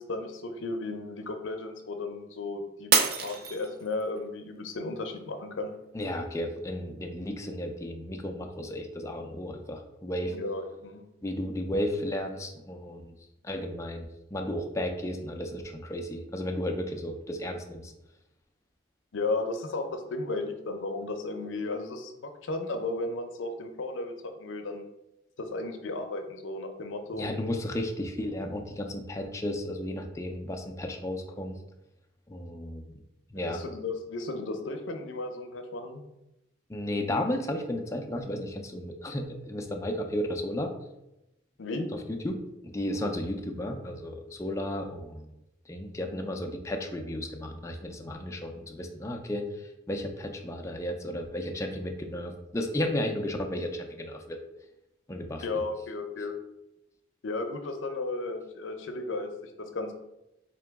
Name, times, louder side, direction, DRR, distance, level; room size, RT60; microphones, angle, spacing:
voice 1, 0.0-2.9 3.2-5.7 10.3-11.1 19.1-24.9 25.4-27.4 33.4-36.0 41.6-41.9 55.4-56.4 57.2-59.9, left 2 dB, 85° left, 6 dB, 0.5 m, -34 dB
Shatter, 2.9-4.2 4.7-5.2 5.7-5.8, right 6 dB, 50° right, 0.4 m, -26 dB
voice 2, 5.9-10.3 11.2-13.1 13.4-17.9 27.1-31.6 32.3-32.9 33.3-33.6 36.7-40.7 42.1-42.4 42.6-45.2 45.7-54.4 55.1-55.6, left 1 dB, 15° left, 4 dB, 0.4 m, -33 dB
3.8 x 2.9 x 3.4 m, 0.91 s
head